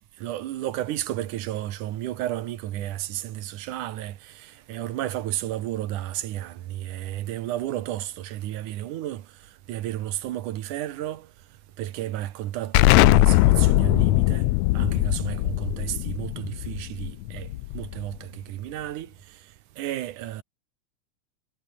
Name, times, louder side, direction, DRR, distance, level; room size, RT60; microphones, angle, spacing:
voice 1, 0.2-9.3 9.7-11.3 11.8-14.5 14.7-17.5 17.7-19.1 19.8-20.4, right 13 dB, 90° right, 2.7 m, -32 dB
Explosion, 12.7-18.1, left 20 dB, 80° left, 1.7 m, -20 dB
omnidirectional pair, 3.5 m